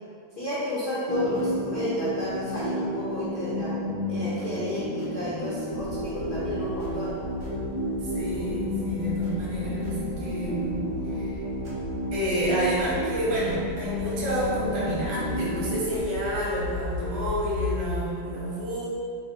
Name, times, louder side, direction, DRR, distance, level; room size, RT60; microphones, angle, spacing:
voice 1, 0.4-3.7 4.1-7.1, left 1 dB, 60° left, -10 dB, 1.1 m, -31 dB
sound 1, 1.1-16.0, equal, 50° right, 1.3 m, -31 dB
sound 2, 5.7-18.0, left 3 dB, 85° left, 1.4 m, -37 dB
voice 2, 6.1-6.7 8.0-10.8 11.1-11.4 12.1-18.9, right 1 dB, 75° right, -6 dB, 3.1 m, -30 dB
7.7 x 6.4 x 2.2 m, 2.3 s
omnidirectional pair, 3.3 m